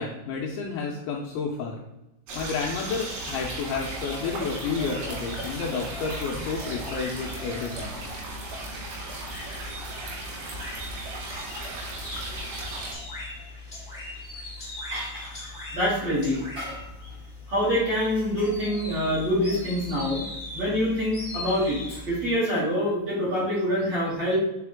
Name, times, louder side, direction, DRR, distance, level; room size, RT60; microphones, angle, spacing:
voice 1, 0.0-1.8 2.3-8.0, left 5 dB, 85° left, 0 dB, 2.7 m, -31 dB
sound 1, 2.3-12.9, right 2 dB, 80° right, 4.8 m, -36 dB
sound 2, 3.3-22.3, left 2 dB, 35° left, 0.9 m, -40 dB
voice 2, 14.9-15.3 15.7-16.9 17.5-20.2 20.5-24.4, equal, 40° right, -9 dB, 2.9 m, -26 dB
8.4 x 4.5 x 3.6 m, 0.90 s
omnidirectional pair, 5.9 m